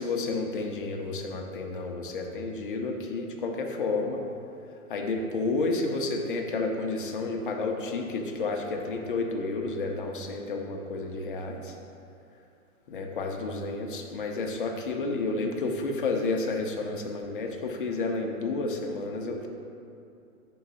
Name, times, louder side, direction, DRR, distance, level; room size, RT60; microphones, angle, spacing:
voice 1, 0.0-4.2 4.9-11.7 12.9-19.5, left 3 dB, 40° left, 2 dB, 0.5 m, -31 dB
4.9 x 3.8 x 5.4 m, 2.6 s
hypercardioid pair, 165°, 42 cm